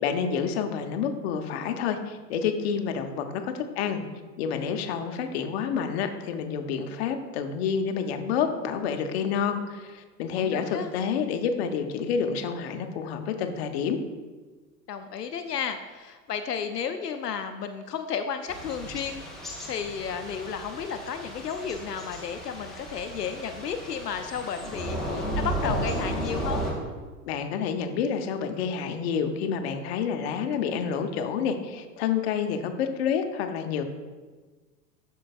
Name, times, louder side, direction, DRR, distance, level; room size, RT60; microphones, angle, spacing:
voice 1, 0.0-4.0 4.4-14.0 27.2-33.8, left 7 dB, 40° left, 6 dB, 0.7 m, -28 dB
voice 2, 10.3-10.9 14.9-19.2 19.6-26.7, left 7 dB, 75° left, 8 dB, 0.6 m, -33 dB
Thunder / Rain, 18.5-26.7, right 1 dB, ahead, 0.4 m, -34 dB
12.5 x 4.6 x 2.4 m, 1.4 s
figure-of-eight pair, 90°, 48 cm